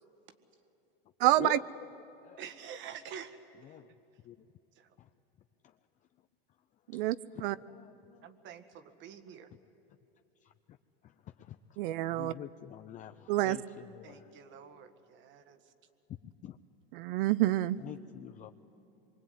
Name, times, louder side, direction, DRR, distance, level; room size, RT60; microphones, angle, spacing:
voice 1, 1.2-1.6 6.9-7.6 11.8-12.3 13.3-13.6 16.9-17.8, right 15 dB, 60° right, 18 dB, 0.8 m, -28 dB
voice 2, 2.4-3.4 3.7-3.8 4.8-4.9 8.2-9.5 14.0-15.6, right 8 dB, 40° right, 10 dB, 1.9 m, -47 dB
voice 3, 7.7-8.3 10.4-10.8 11.0-11.8 12.1-14.3 16.2-16.6 17.8-18.5, left 11 dB, 25° left, 8 dB, 0.6 m, -47 dB
25.0 x 24.0 x 9.5 m, 3.0 s
supercardioid pair, 130°, 30 cm